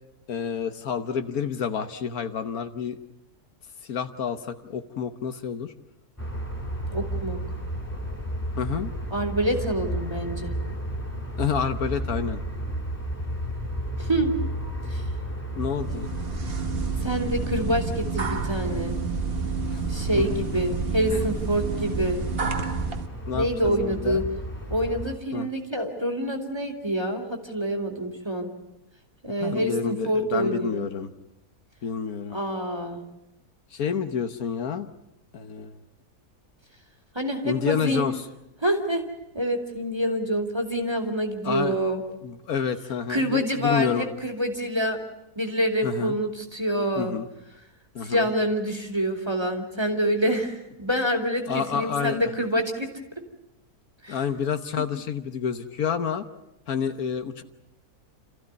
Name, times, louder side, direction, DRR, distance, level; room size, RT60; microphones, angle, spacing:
voice 1, 0.3-3.0 3.8-5.7 8.6-8.9 11.4-12.4 15.6-16.1 19.7-19.8 20.2-20.3 21.1-21.3 23.3-24.2 25.3-25.5 29.4-31.1 31.8-32.4 33.7-34.9 35.3-35.8 37.4-38.2 41.4-41.7 42.2-44.1 45.8-46.2 47.0-47.3 47.9-48.3 51.5-52.2 54.1-56.3 56.7-57.4, left 7 dB, 70° left, 9 dB, 1.5 m, -29 dB
sound 1, 6.2-25.2, right 1 dB, 10° left, 2.4 m, -33 dB
voice 2, 6.9-7.4 9.1-10.5 14.0-14.3 14.9-15.0 17.0-18.9 19.9-22.2 23.3-24.2 24.7-28.5 29.2-30.9 32.3-33.0 37.1-38.0 38.6-39.0 39.3-42.0 43.1-45.0 45.4-47.1 48.0-52.9 54.0-54.2 54.8-54.9, equal, 15° right, 4 dB, 2.6 m, -26 dB
sound 2, 15.8-23.1, right 5 dB, 40° right, 1.5 m, -30 dB
28.5 x 14.5 x 9.5 m, 0.93 s
omnidirectional pair, 1.6 m